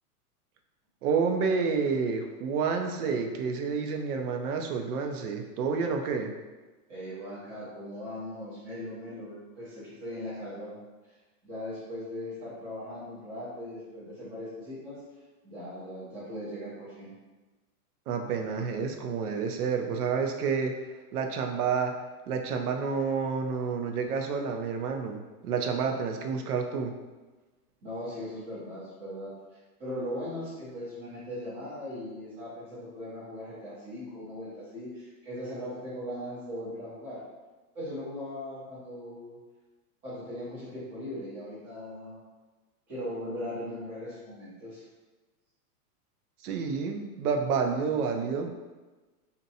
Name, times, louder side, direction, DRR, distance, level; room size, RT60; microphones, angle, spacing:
voice 1, 1.0-6.3 18.1-20.8 21.1-22.0 22.3-26.9 46.4-48.6, right 5 dB, 80° right, 4 dB, 0.5 m, -29 dB
voice 2, 6.9-10.8 11.4-15.0 15.4-17.1 27.8-37.2 37.7-39.4 40.0-42.2 42.9-44.9, left 1 dB, 15° right, -10 dB, 0.5 m, -39 dB
2.6 x 2.2 x 2.6 m, 1.2 s
supercardioid pair, 160°, 45 cm